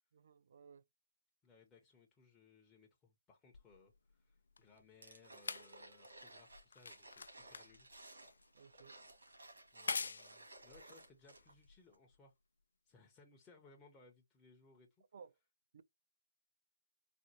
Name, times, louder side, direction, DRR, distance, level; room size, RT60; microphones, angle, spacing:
voice 1, 0.1-0.8 8.5-9.0 15.1-15.3 15.7-15.8, right 6 dB, 55° right, 0.4 m, -58 dB
voice 2, 1.4-7.9 9.7-12.3 12.8-14.9, left 3 dB, 15° left, 0.7 m, -65 dB
sound 1, 3.5-12.2 13.0-13.1, left 4 dB, 70° left, 0.4 m, -47 dB
sound 2, 5.0-11.6 11.9-12.0, right 2 dB, 85° right, 1.9 m, -58 dB
4.2 x 2.2 x 2.7 m
figure-of-eight pair, 150°, 0 cm